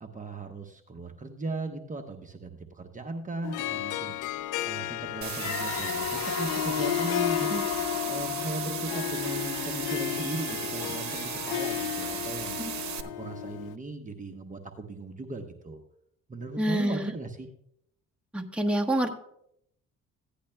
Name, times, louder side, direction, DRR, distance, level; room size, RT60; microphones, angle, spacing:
voice 1, 0.0-4.1 4.6-7.7 8.1-12.6 13.0-15.8 16.3-17.5, right 2 dB, 25° right, 4 dB, 0.9 m, -37 dB
Harp, 3.4-13.7, left 13 dB, 85° left, 0.5 m, -33 dB
sound 1, 5.2-13.0, right 9 dB, 65° right, 0.9 m, -36 dB
sound 2, 5.4-10.0, left 8 dB, 55° left, 1.0 m, -35 dB
voice 2, 16.6-17.1 18.3-19.1, right 1 dB, 5° right, 2 dB, 1.2 m, -27 dB
16.0 x 10.0 x 2.2 m, 0.72 s
cardioid pair, 90°, 30 cm